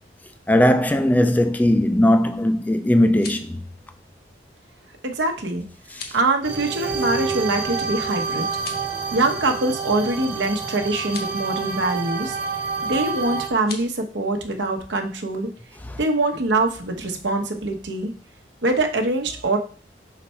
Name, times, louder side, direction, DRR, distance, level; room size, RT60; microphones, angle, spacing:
voice 1, 0.5-3.6 6.0-6.1 15.9-16.0, left 1 dB, 10° left, 0.3 m, -19 dB
sound 1, 3.0-3.6 5.8-6.2 8.5-9.0 11.0-11.3 13.6-13.9, left 5 dB, 55° left, 1.0 m, -38 dB
voice 2, 5.0-5.6 6.1-8.5 9.1-12.4 12.8-15.5 16.0-18.1 18.6-19.6, right 2 dB, 85° right, 1.0 m, -23 dB
sound 2, 6.4-13.5, right 5 dB, 55° right, 1.4 m, -28 dB
5.5 x 4.1 x 4.3 m
head